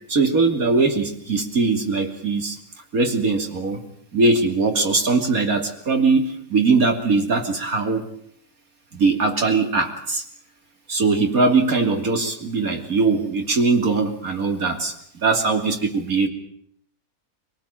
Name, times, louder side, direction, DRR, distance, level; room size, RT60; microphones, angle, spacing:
voice 1, 0.1-2.6 2.9-3.8 4.1-8.0 8.9-10.2 10.9-16.3, right 3 dB, 75° right, 4 dB, 3.3 m, -21 dB
25.0 x 18.5 x 8.9 m, 0.66 s
omnidirectional pair, 1.5 m